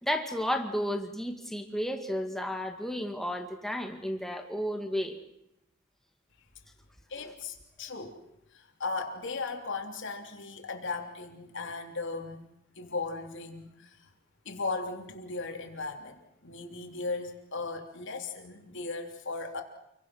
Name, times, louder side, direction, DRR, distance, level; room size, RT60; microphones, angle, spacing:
voice 1, 0.0-5.2 7.2-7.3, equal, ahead, 4 dB, 2.3 m, -32 dB
voice 2, 7.1-8.2 8.5-12.4 12.7-14.1 14.4-19.6, left 3 dB, 60° left, 3 dB, 3.3 m, -37 dB
29.0 x 23.0 x 6.2 m, 0.82 s
head